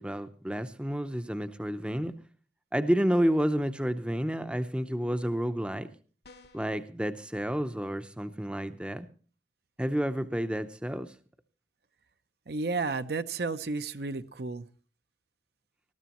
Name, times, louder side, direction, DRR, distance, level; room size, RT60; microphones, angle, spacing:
voice 1, 0.0-2.1 2.7-5.9 6.5-9.1 9.8-11.1, equal, 5° right, 10 dB, 0.6 m, -30 dB
sound 1, 6.2-6.8, left 3 dB, 60° left, 1.1 m, -54 dB
voice 2, 12.5-14.7, right 3 dB, 60° right, 11 dB, 0.6 m, -32 dB
19.5 x 13.5 x 3.0 m, 0.40 s
head